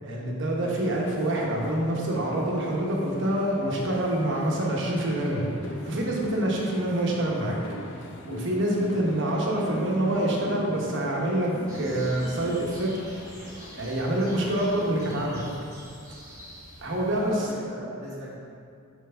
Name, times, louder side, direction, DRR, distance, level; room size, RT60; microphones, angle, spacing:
voice 1, 0.0-7.6 8.2-13.0 13.4-15.4 16.8-17.5, right 1 dB, 55° right, -2 dB, 1.0 m, -26 dB
sound 1, 0.6-15.6, left 1 dB, 55° left, 0.5 m, -42 dB
sound 2, 11.7-17.3, equal, 15° right, 1.5 m, -46 dB
voice 2, 17.1-18.3, equal, 30° right, -9 dB, 1.1 m, -40 dB
4.6 x 4.6 x 5.2 m, 2.4 s
head